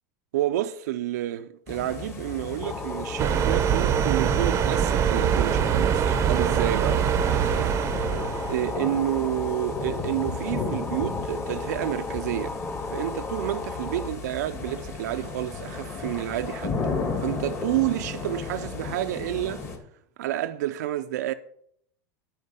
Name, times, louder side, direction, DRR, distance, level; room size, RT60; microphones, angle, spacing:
voice 1, 0.3-7.1 8.5-12.6 12.9-16.8 17.2-19.6 20.2-21.3, right 14 dB, 85° right, 0.6 m, -29 dB
sound 1, 1.7-19.8, left 4 dB, 30° left, 2.3 m, -34 dB
sound 2, 2.6-14.1, left 3 dB, 10° left, 0.5 m, -35 dB
sound 3, 3.2-8.8, right 9 dB, 30° right, 0.7 m, -23 dB
11.0 x 4.5 x 8.1 m
supercardioid pair, 135°, 9 cm